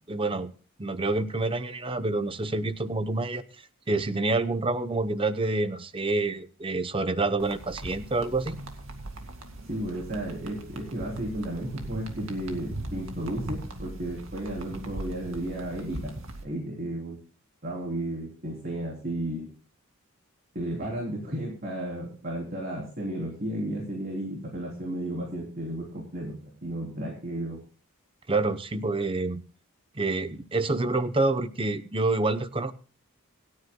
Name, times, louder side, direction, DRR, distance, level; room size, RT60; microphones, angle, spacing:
voice 1, 0.1-0.5 0.8-3.4 3.9-8.6 28.3-29.4 29.9-32.7, right 2 dB, 25° right, 12 dB, 0.7 m, -27 dB
sound 1, 7.4-16.4, right 1 dB, 70° right, 2.3 m, -40 dB
voice 2, 9.7-16.1 16.4-17.2 17.6-19.5 20.5-27.6, right 1 dB, 45° right, -2 dB, 3.4 m, -33 dB
27.0 x 9.7 x 2.2 m, 0.37 s
head